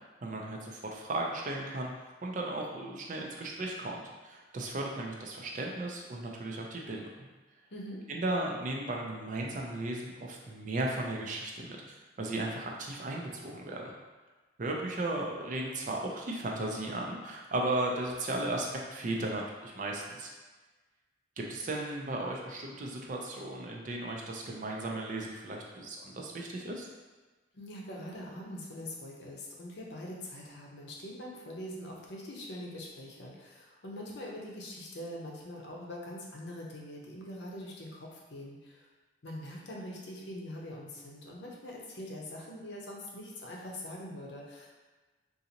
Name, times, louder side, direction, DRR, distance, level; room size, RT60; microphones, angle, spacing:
voice 1, 0.2-1.9 2.2-7.1 8.1-11.8 12.2-13.9 14.6-20.3 21.4-26.9, right 2 dB, 40° right, -1 dB, 0.4 m, -35 dB
voice 2, 7.7-8.0 27.5-38.9 39.2-44.7, left 1 dB, 65° left, -2 dB, 0.7 m, -43 dB
3.9 x 2.5 x 2.8 m, 1.3 s
head